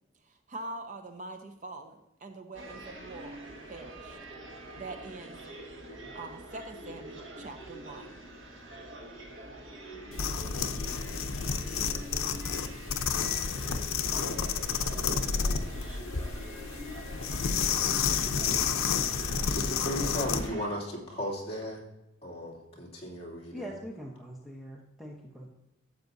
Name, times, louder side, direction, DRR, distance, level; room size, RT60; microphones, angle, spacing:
voice 1, 0.2-3.4 3.7-4.2 4.7-5.4 6.1-8.1, right 2 dB, 40° right, 6 dB, 0.7 m, -43 dB
sound 1, 2.5-20.7, right 1 dB, 65° right, 1.7 m, -45 dB
sound 2, 10.1-20.5, left 6 dB, 80° left, 0.7 m, -30 dB
voice 2, 19.5-21.8 22.2-23.7, equal, 30° left, -4 dB, 2.8 m, -35 dB
voice 3, 23.5-25.5, equal, ahead, -4 dB, 0.9 m, -42 dB
12.5 x 7.9 x 2.7 m, 0.94 s
head